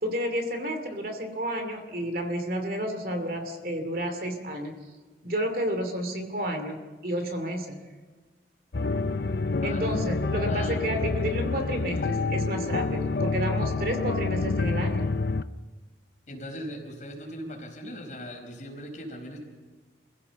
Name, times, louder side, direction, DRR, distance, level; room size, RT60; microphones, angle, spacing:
voice 1, 0.0-4.8 5.2-7.8 9.6-15.1, equal, 50° right, 5 dB, 2.6 m, -31 dB
sound 1, 8.7-15.4, left 3 dB, 60° left, 0.6 m, -28 dB
voice 2, 9.6-10.0 10.5-12.1 16.3-19.4, equal, 40° left, 1 dB, 4.9 m, -40 dB
27.0 x 16.0 x 7.0 m, 1.3 s
head